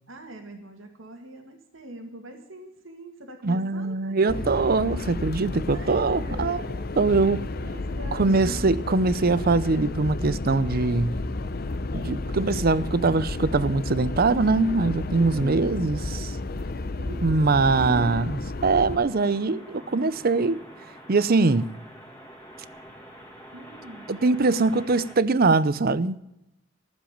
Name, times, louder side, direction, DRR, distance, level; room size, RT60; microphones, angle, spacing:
voice 1, 0.1-4.6 5.7-8.8 15.1-15.8 17.0-17.6 23.5-24.1, right 1 dB, 80° right, 2.1 m, -43 dB
voice 2, 3.4-6.6 7.0-7.4 8.1-11.2 11.9-16.3 17.2-20.6 21.1-21.7 24.1-26.2, right 3 dB, 50° right, 0.6 m, -22 dB
sound 1, 4.3-19.0, left 2 dB, 50° left, 0.7 m, -32 dB
sound 2, 18.9-25.2, equal, 10° left, 2.1 m, -46 dB
14.5 x 7.5 x 8.6 m
head